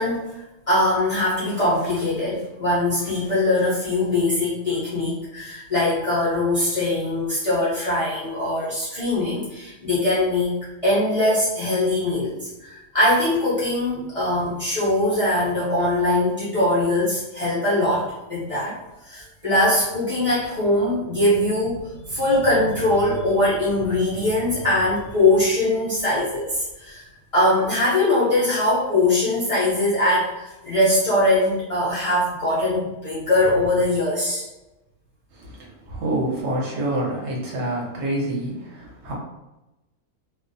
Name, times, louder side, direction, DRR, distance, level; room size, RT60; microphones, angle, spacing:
voice 1, 0.0-10.5 10.8-18.8 19.0-27.0 27.3-34.4, left 1 dB, 55° left, -9 dB, 0.4 m, -22 dB
voice 2, 35.3-39.1, right 1 dB, 55° right, -3 dB, 0.9 m, -27 dB
2.4 x 2.1 x 2.6 m, 0.99 s
omnidirectional pair, 1.6 m